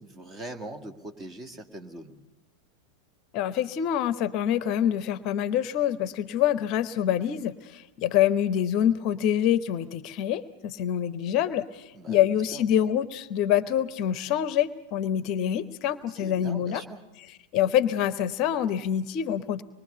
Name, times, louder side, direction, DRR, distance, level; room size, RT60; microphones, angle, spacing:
voice 1, 0.0-2.1 11.9-12.6 16.1-17.0, right 1 dB, 20° right, 5 dB, 1.9 m, -41 dB
voice 2, 3.3-16.8 17.5-19.6, left 10 dB, 40° left, 15 dB, 0.8 m, -26 dB
25.0 x 21.5 x 6.8 m, 1.0 s
figure-of-eight pair, 90°, 0 cm